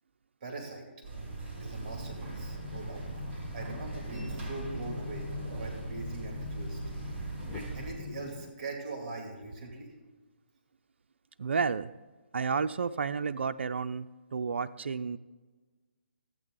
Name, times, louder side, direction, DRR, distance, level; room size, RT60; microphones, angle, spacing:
voice 1, 0.4-0.9 1.6-3.0 3.5-6.8 7.5-9.9, right 3 dB, 35° right, 1 dB, 2.3 m, -41 dB
sound 1, 1.0-7.9, right 2 dB, 20° right, 3.6 m, -39 dB
sound 2, 2.0-8.5, left 9 dB, 15° left, 0.4 m, -45 dB
voice 2, 11.4-11.9 12.3-15.2, right 5 dB, 80° right, 9 dB, 0.4 m, -31 dB
13.5 x 8.7 x 3.8 m, 1.3 s
hypercardioid pair, 155°, 6 cm